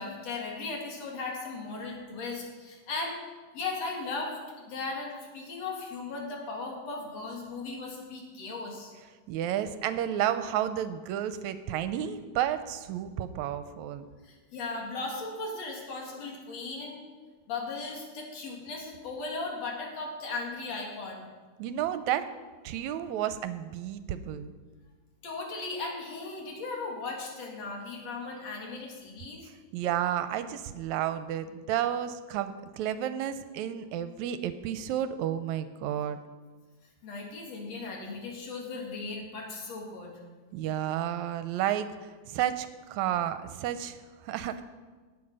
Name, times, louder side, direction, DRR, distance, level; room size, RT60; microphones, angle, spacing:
voice 1, 0.0-3.2 3.5-8.9 14.2-17.0 17.5-21.2 25.2-29.4 37.0-40.2, left 3 dB, 65° left, 0 dB, 3.2 m, -37 dB
voice 2, 9.3-14.1 21.6-22.3 22.6-24.5 29.4-36.2 40.5-44.6, right 11 dB, 85° right, 11 dB, 1.9 m, -31 dB
18.5 x 7.3 x 5.4 m, 1.4 s
omnidirectional pair, 3.4 m